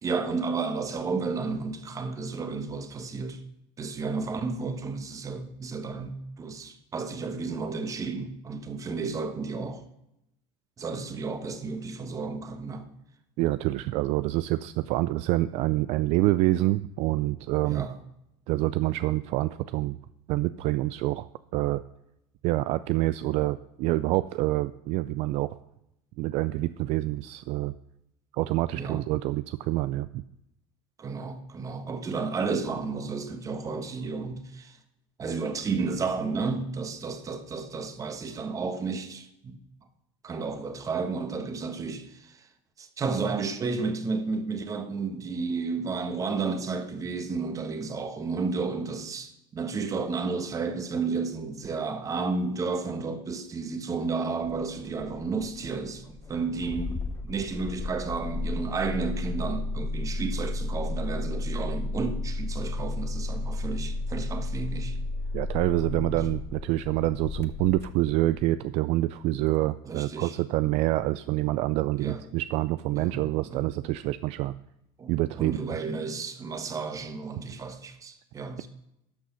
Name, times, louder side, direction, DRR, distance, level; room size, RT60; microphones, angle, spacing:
voice 1, 0.0-3.4 3.8-9.8 10.8-12.9 17.7-18.0 28.7-29.0 31.0-34.8 35.2-39.6 40.2-42.5 42.8-65.0 65.9-66.1 69.8-70.3 72.0-72.2 73.0-73.6 75.0-78.7, right 4 dB, 25° right, 1.3 m, -32 dB
voice 2, 13.4-17.9 18.5-20.0 20.3-21.8 22.4-25.6 26.2-27.7 28.3-30.2 65.3-74.5 75.1-75.8, right 17 dB, 60° right, 0.4 m, -27 dB
Engine starting, 54.4-68.5, left 2 dB, 20° left, 0.8 m, -33 dB
12.5 x 6.3 x 5.6 m
supercardioid pair, 120°, 12 cm